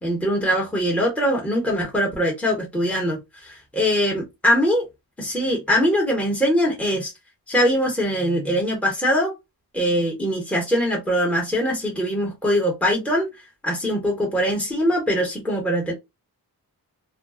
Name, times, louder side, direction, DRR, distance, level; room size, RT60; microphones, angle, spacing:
voice 1, 0.0-4.8 5.2-7.1 7.5-9.3 9.7-13.3 13.6-15.9, equal, 5° left, 0.9 m, -22 dB
2.4 x 2.2 x 2.4 m
cardioid pair, 85°, 40 cm